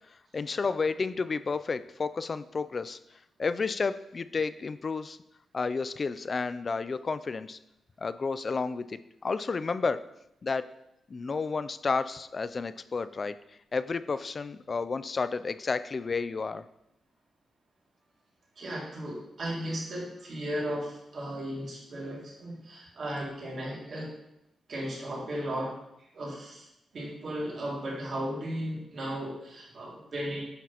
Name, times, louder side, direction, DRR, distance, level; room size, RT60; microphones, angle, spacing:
voice 1, 0.1-3.0 3.4-5.2 5.5-7.6 8.0-10.0 10.4-10.7 11.1-13.4 13.7-16.6, left 4 dB, 40° left, 13 dB, 0.3 m, -31 dB
voice 2, 18.6-24.1 24.7-25.7 26.1-26.7 26.9-30.4, equal, 55° right, -4 dB, 2.3 m, -35 dB
9.2 x 5.9 x 2.9 m, 0.83 s
cardioid pair, 110°, 0 cm